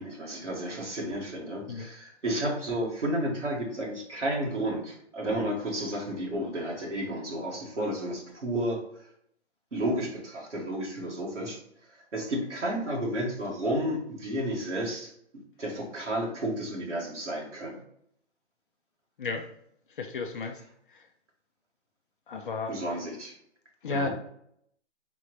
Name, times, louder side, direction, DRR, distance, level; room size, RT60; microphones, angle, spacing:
voice 1, 0.0-8.8 9.7-11.6 12.1-15.1 15.6-17.8 22.7-23.3 23.9-24.1, right 1 dB, 90° right, -3 dB, 1.8 m, -32 dB
voice 2, 20.0-20.6 20.9-21.1 22.3-22.8 23.8-24.1, left 4 dB, 50° left, 4 dB, 0.5 m, -33 dB
4.2 x 3.8 x 3.1 m, 0.71 s
figure-of-eight pair, 135°, 35 cm